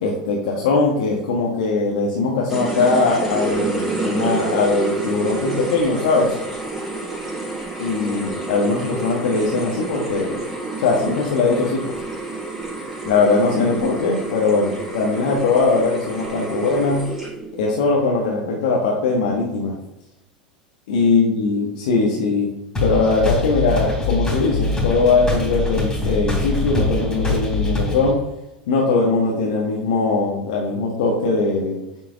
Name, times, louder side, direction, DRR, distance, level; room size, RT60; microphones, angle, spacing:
voice 1, 0.0-6.4 7.8-10.4 10.8-11.9 13.0-17.1 17.6-19.8 20.9-22.5 22.8-28.2 28.7-31.8, left 3 dB, 60° left, -2 dB, 1.2 m, -20 dB
sound 1, 2.5-17.6, right 2 dB, ahead, 3.0 m, -28 dB
sound 2, 22.8-28.1, left 3 dB, 15° left, 3.1 m, -23 dB
8.1 x 4.5 x 5.0 m, 0.92 s
figure-of-eight pair, 80°, 5 cm